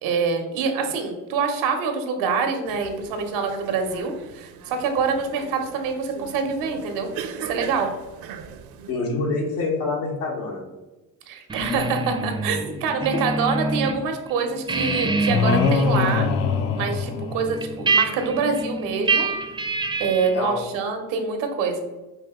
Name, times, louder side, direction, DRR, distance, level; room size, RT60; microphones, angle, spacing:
voice 1, 0.0-7.1 7.4-7.9 11.3-16.3 16.8-19.3 20.0-21.8, right 5 dB, 80° right, 5 dB, 1.0 m, -25 dB
sound 1, 2.7-8.9, right 7 dB, 55° right, 0.6 m, -39 dB
voice 2, 8.9-10.7 13.1-13.2 20.3-20.6, left 3 dB, 90° left, -2 dB, 1.5 m, -26 dB
sound 2, 11.5-14.0 14.3-20.5, right 3 dB, 10° right, 0.4 m, -26 dB
sound 3, 15.3-17.8, left 5 dB, 65° left, 0.6 m, -22 dB
5.2 x 2.8 x 3.6 m, 1.1 s
supercardioid pair, 75°, 45 cm